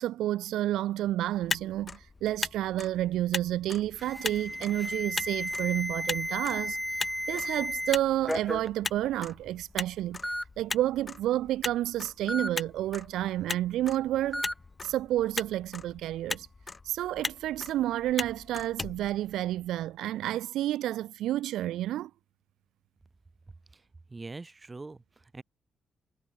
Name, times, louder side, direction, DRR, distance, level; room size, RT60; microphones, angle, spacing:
voice 1, 0.0-6.8 7.3-10.2 10.6-14.4 14.8-16.5 16.8-22.1, right 13 dB, 90° right, 0.7 m, -30 dB
Motor vehicle (road), 1.3-19.8, left 4 dB, 35° left, 2.6 m, -39 dB
Alarm, 4.0-7.9 8.3-8.7 9.5-9.6 10.2-10.4 12.3-12.5 14.3-14.5, equal, 5° left, 1.5 m, -34 dB
voice 2, 24.1-25.4, right 3 dB, 30° right, 1.5 m, -43 dB
cardioid pair, 65°, 0 cm